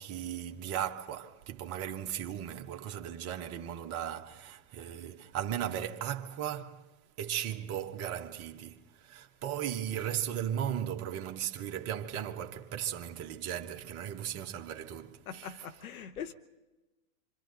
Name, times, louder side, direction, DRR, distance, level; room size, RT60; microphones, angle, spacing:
voice 1, 0.0-6.9 7.2-15.6, right 10 dB, 35° right, 1.2 m, -37 dB
voice 2, 15.3-16.3, left 8 dB, 70° left, 1.1 m, -42 dB
26.0 x 26.0 x 4.0 m
hypercardioid pair, 110°, 44 cm